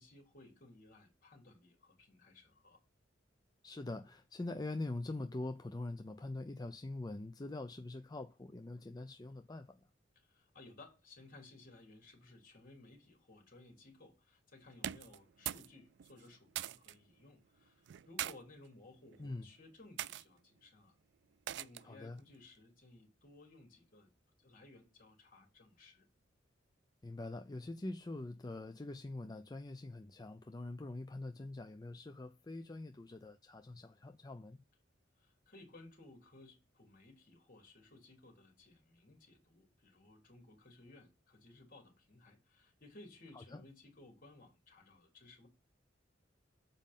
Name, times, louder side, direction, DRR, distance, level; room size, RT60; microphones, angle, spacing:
voice 1, 0.0-2.8 10.2-21.0 21.5-24.1 24.4-26.1 35.2-45.5, left 2 dB, 50° left, 3.3 m, -59 dB
voice 2, 3.6-9.8 19.2-19.5 21.8-22.2 27.0-34.6 43.3-43.6, left 2 dB, 20° left, 0.5 m, -44 dB
sound 1, 14.7-15.7 16.0-17.0 17.9-18.4 19.1-19.4 20.0-20.2 21.5-21.9, right 12 dB, 65° right, 0.3 m, -41 dB
7.4 x 5.2 x 5.4 m
head